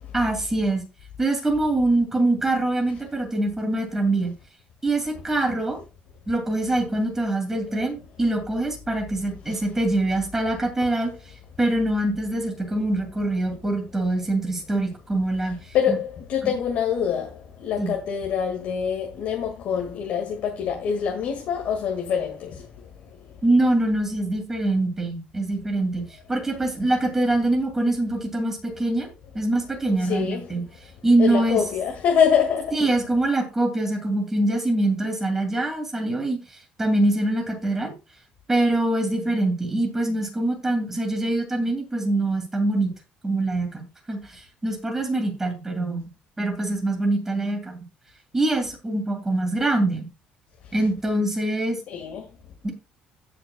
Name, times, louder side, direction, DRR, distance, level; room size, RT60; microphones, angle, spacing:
voice 1, 0.1-0.8 1.2-4.3 4.8-5.8 6.3-11.1 11.6-15.5 15.9-16.0 16.4-16.6 17.8-17.9 23.4-29.1 29.3-30.7 31.0-31.6 32.7-36.4 36.8-37.9 38.5-42.9 43.2-46.0 46.4-47.8 48.3-50.1 50.7-51.8 52.6-52.7, right 2 dB, 10° right, 2.6 m, -24 dB
voice 2, 15.7-22.6 30.1-30.4 31.2-32.7 51.9-52.3, left 7 dB, 60° left, 2.0 m, -25 dB
16.5 x 5.9 x 2.3 m
cardioid pair, 160°, 3 cm